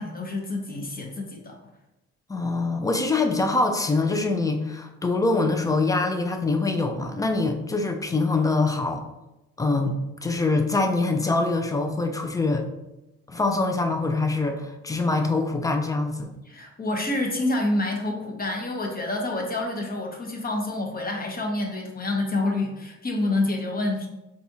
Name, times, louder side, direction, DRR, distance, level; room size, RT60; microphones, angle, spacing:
voice 1, 0.0-1.6 16.5-24.1, left 2 dB, 30° left, 1 dB, 0.8 m, -28 dB
voice 2, 2.3-9.0 9.6-12.6 13.3-16.3, left 3 dB, 10° left, 4 dB, 0.4 m, -24 dB
4.1 x 2.4 x 2.8 m, 0.96 s
cardioid pair, 90°, 30 cm